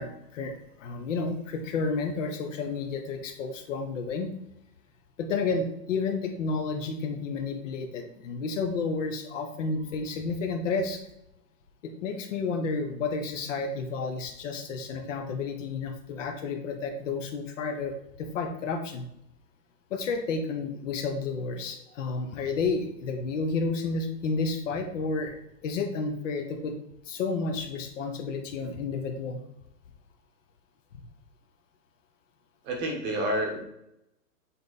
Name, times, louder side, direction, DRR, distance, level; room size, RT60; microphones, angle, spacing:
voice 1, 0.0-4.3 5.2-11.0 11.8-19.0 19.9-25.3 25.6-26.7 27.1-29.4, left 4 dB, 50° left, 5 dB, 1.1 m, -31 dB
voice 2, 32.7-33.6, right 1 dB, 20° right, 2 dB, 1.1 m, -29 dB
7.6 x 3.6 x 4.1 m, 0.80 s
hypercardioid pair, 135°, 49 cm